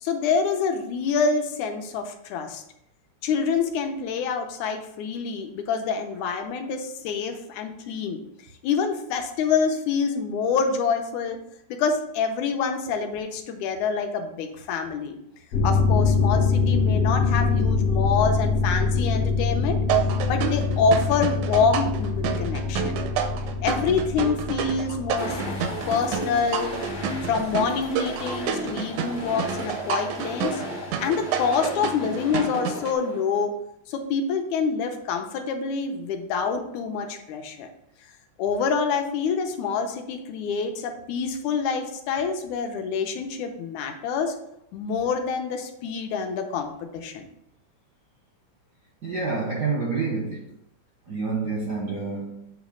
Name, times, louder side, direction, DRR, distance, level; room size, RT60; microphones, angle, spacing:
voice 1, 0.0-2.6 3.2-8.2 8.6-11.4 11.7-15.2 15.6-19.8 20.3-23.0 23.6-25.4 25.9-26.8 27.2-30.6 31.0-33.5 33.9-37.7 38.4-44.4 44.7-47.3, left 5 dB, 80° left, 4 dB, 2.1 m, -26 dB
sound 1, 15.5-27.6 28.0-28.1, left 4 dB, 65° left, 1.7 m, -25 dB
sound 2, 19.9-33.0, right 8 dB, 85° right, 2.0 m, -30 dB
sound 3, 25.2-33.4, left 1 dB, 45° left, 0.5 m, -35 dB
voice 2, 49.0-50.5 51.1-52.5, right 4 dB, 65° right, -4 dB, 1.0 m, -28 dB
7.5 x 3.1 x 5.1 m, 0.77 s
omnidirectional pair, 3.4 m